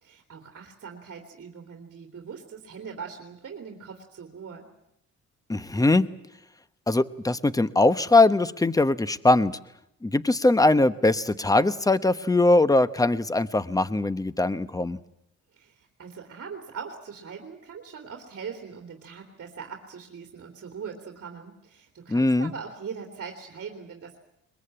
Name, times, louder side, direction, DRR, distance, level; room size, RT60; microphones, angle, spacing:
voice 1, 0.0-4.7 15.5-24.2, right 6 dB, 50° right, 3 dB, 3.1 m, -41 dB
voice 2, 5.5-6.1 6.9-9.5 10.0-15.0 22.1-22.5, left 2 dB, 10° left, 15 dB, 1.0 m, -21 dB
21.5 x 21.5 x 8.8 m, 0.79 s
cardioid pair, 90°, 30 cm